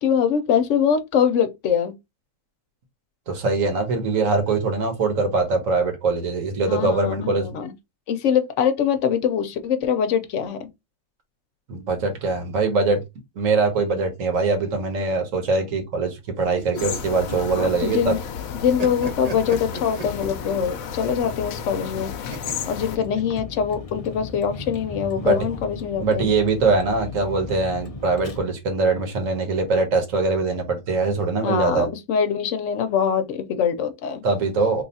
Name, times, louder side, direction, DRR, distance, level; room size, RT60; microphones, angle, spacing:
voice 1, 0.0-1.9 6.7-7.7 8.1-10.7 17.5-18.2 18.6-22.1 22.7-26.3 31.4-34.2, left 7 dB, 65° left, 1.0 m, -23 dB
voice 2, 3.3-7.5 11.7-13.0 13.4-18.2 25.2-25.4 26.0-31.9 34.2-34.8, right 3 dB, 70° right, 1.4 m, -22 dB
sound 1, 16.4-18.1 18.4-20.6 22.3-23.7, right 3 dB, 35° right, 0.7 m, -36 dB
sound 2, 16.8-23.0, left 8 dB, 90° left, 1.0 m, -32 dB
Vehicle, 22.9-28.4, left 3 dB, 45° left, 0.4 m, -37 dB
3.3 x 2.3 x 4.0 m
omnidirectional pair, 1.4 m